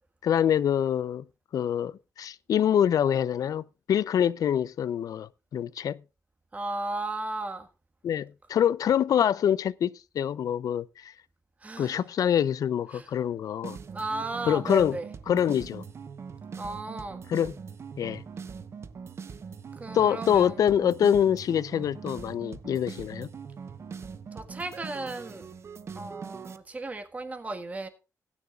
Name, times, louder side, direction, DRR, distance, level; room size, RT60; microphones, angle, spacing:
voice 1, 0.2-1.2 1.5-6.0 8.0-11.1 11.8-13.8 14.5-15.0 15.3-15.8 17.3-17.5 18.0-18.2 19.9-23.3, left 9 dB, 80° left, 0.5 m, -25 dB
voice 2, 6.5-7.7 11.6-12.0 12.9-13.1 13.9-15.1 16.6-17.2 19.8-20.6 24.3-25.5 25.9-27.9, right 2 dB, 25° right, 1.5 m, -35 dB
sound 1, 13.6-26.6, right 6 dB, 45° right, 0.9 m, -42 dB
18.0 x 9.9 x 2.4 m
wide cardioid pair, 155°, 6 cm